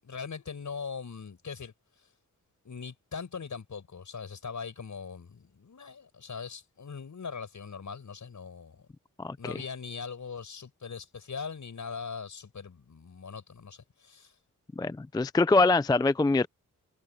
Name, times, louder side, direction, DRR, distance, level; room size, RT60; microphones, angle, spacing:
voice 1, 0.0-1.7 2.6-8.9 9.4-14.3, left 5 dB, 60° left, 7.0 m, -41 dB
voice 2, 9.2-9.6 14.8-16.5, left 3 dB, 10° left, 0.4 m, -24 dB
wide cardioid pair, 105°, 33 cm